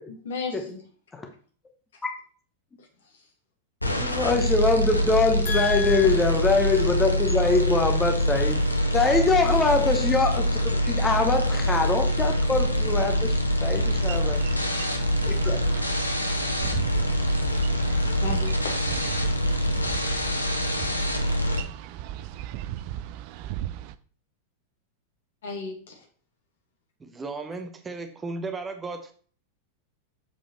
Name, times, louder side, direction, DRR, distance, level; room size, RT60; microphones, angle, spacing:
voice 1, 0.1-0.8 5.5-6.1 18.2-18.5 25.4-26.0, left 5 dB, 60° left, 2 dB, 2.0 m, -32 dB
sound 1, 3.8-21.6, equal, 85° left, 1.0 m, -25 dB
voice 2, 3.9-8.6 8.9-14.4 15.2-15.6, left 3 dB, 15° left, 4 dB, 1.0 m, -24 dB
Boat Water vehicle, 13.8-24.0, right 12 dB, 45° right, 0.4 m, -37 dB
voice 3, 27.0-29.1, right 3 dB, 15° right, 7 dB, 0.8 m, -35 dB
7.1 x 5.0 x 4.3 m, 0.44 s
figure-of-eight pair, 90°, 0 cm